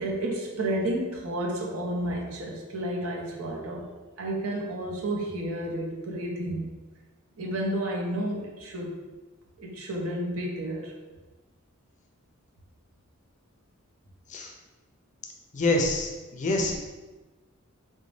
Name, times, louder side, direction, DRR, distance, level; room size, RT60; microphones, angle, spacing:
voice 1, 0.0-3.9 4.2-6.7 7.4-9.0 9.6-10.9, right 1 dB, 80° right, -1 dB, 0.7 m, -31 dB
voice 2, 15.5-16.8, left 2 dB, 35° left, 1 dB, 0.4 m, -26 dB
3.9 x 2.1 x 3.1 m, 1.2 s
head